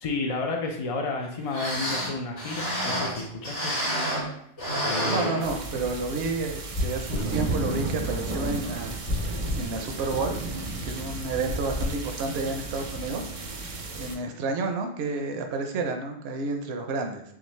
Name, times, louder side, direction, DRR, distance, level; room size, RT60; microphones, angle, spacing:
voice 1, 0.0-3.7 4.8-5.3, left 3 dB, 55° left, 1 dB, 0.4 m, -31 dB
sound 1, 1.2-1.3 1.5-4.3 4.6-6.0 6.4-6.5 7.1-7.4 7.8-7.9, equal, 90° left, 2.0 m, -30 dB
voice 2, 5.0-10.4 10.9-13.3 13.9-17.2, right 3 dB, 70° right, 4 dB, 0.8 m, -30 dB
sound 2, 5.4-14.2, right 2 dB, 45° right, 0.4 m, -33 dB
sound 3, 6.7-7.3 9.1-9.7 11.5-12.0, left 2 dB, 75° left, 1.4 m, -30 dB
5.8 x 2.0 x 3.1 m, 0.73 s
omnidirectional pair, 1.2 m